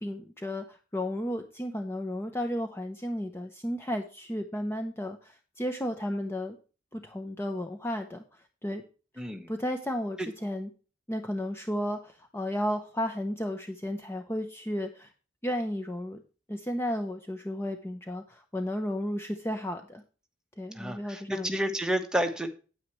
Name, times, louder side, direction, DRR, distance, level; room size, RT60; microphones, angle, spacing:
voice 1, 0.0-6.6 6.9-8.8 9.1-10.7 11.1-15.1 15.4-16.2 16.5-20.0 20.6-21.5, equal, 15° left, 6 dB, 0.8 m, -33 dB
voice 2, 9.2-9.5 20.7-22.5, right 1 dB, 5° right, 5 dB, 1.2 m, -30 dB
9.3 x 9.2 x 3.1 m, 0.35 s
head